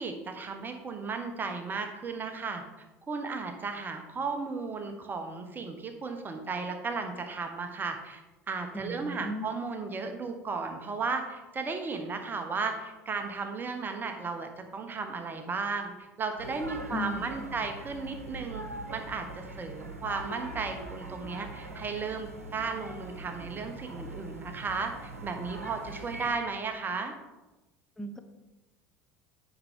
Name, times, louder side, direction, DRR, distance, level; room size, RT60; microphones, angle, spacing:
voice 1, 0.0-2.6 3.1-8.2 8.5-15.9 16.2-27.1, right 4 dB, 25° right, 5 dB, 1.0 m, -35 dB
voice 2, 8.7-9.5 16.9-17.4 28.0-28.2, equal, 5° left, 7 dB, 0.9 m, -36 dB
sound 1, 16.4-26.3, right 2 dB, 85° right, 0.9 m, -42 dB
9.3 x 5.6 x 3.6 m, 1.1 s
figure-of-eight pair, 65°, 8 cm